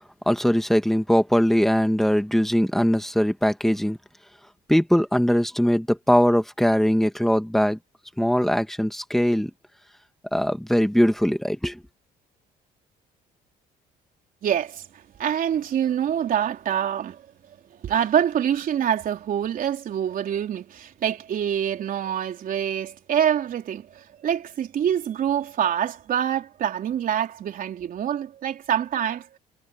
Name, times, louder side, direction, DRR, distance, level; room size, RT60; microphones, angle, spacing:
voice 1, 0.3-4.0 4.7-7.8 8.2-9.5 10.3-11.8, equal, ahead, 2.1 m, -21 dB
voice 2, 14.4-17.3 17.7-29.4, right 9 dB, 55° right, 3.8 m, -26 dB
cardioid pair, 110°, 17 cm